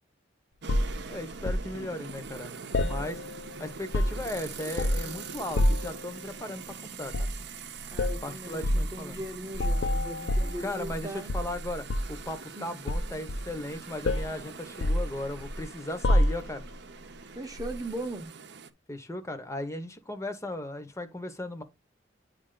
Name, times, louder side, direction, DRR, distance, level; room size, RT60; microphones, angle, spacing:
sound 1, 0.6-18.7, right 5 dB, 65° right, 0.7 m, -44 dB
sound 2, 0.7-1.7 2.7-3.5 3.8-4.3 4.8-5.1 5.6-6.0 7.1-7.4 7.9-8.2 8.6-8.9 9.5-11.0 11.3-12.2 12.9-13.7 14.0-14.4 14.8-15.6 16.0-16.6 17.6-17.8, left 1 dB, 70° left, 0.6 m, -27 dB
voice 1, 1.1-3.2 3.6-7.3 8.2-9.2 10.4-16.6 18.9-21.6, left 1 dB, 15° left, 0.8 m, -37 dB
voice 2, 7.9-11.3 12.6-12.7 17.3-18.3, right 1 dB, 20° right, 0.8 m, -39 dB
9.5 x 3.3 x 3.8 m
head